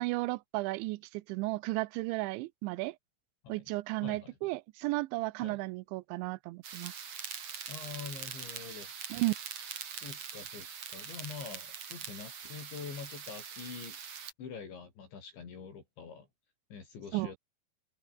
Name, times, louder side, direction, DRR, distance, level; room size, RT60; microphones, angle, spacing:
voice 1, 0.0-3.0 3.5-6.9 9.1-9.4 17.1-17.3, right 21 dB, 80° right, 2.9 m, -34 dB
voice 2, 4.0-4.5 5.4-5.6 7.7-8.9 10.0-10.7 10.9-14.0 14.4-16.3 16.7-17.4, left 6 dB, 70° left, 7.4 m, -45 dB
sound 1, 6.6-14.3, right 7 dB, 40° right, 3.3 m, -43 dB
omnidirectional pair, 5.4 m